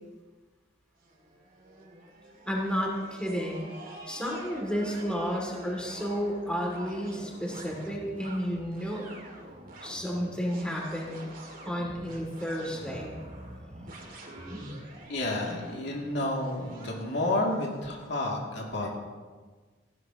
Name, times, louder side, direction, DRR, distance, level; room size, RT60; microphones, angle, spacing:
sound 1, 1.0-18.1, right 1 dB, 50° right, 2.5 m, -46 dB
voice 1, 2.5-3.7 4.1-9.1 9.8-11.2 11.6-13.2 13.8-13.9 14.5-14.7, equal, 5° left, -2 dB, 2.6 m, -32 dB
voice 2, 15.1-19.0, left 1 dB, 65° left, -2 dB, 2.7 m, -30 dB
17.5 x 16.0 x 3.0 m, 1.4 s
head